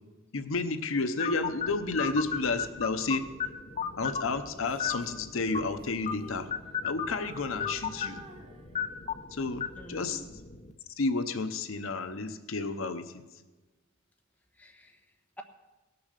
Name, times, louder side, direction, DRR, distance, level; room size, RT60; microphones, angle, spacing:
voice 1, 0.3-3.3 4.0-6.5 6.8-8.2 9.3-10.2 11.0-13.1, left 3 dB, 70° left, 10 dB, 0.7 m, -31 dB
sound 1, 1.2-10.7, left 7 dB, 35° left, 0.8 m, -36 dB
Female singing, 4.5-6.8 7.1-9.1, right 2 dB, 30° right, 1.0 m, -50 dB
voice 2, 9.8-10.3 14.5-15.4, right 1 dB, 5° left, 2 dB, 1.2 m, -49 dB
17.5 x 7.0 x 6.5 m, 1.2 s
head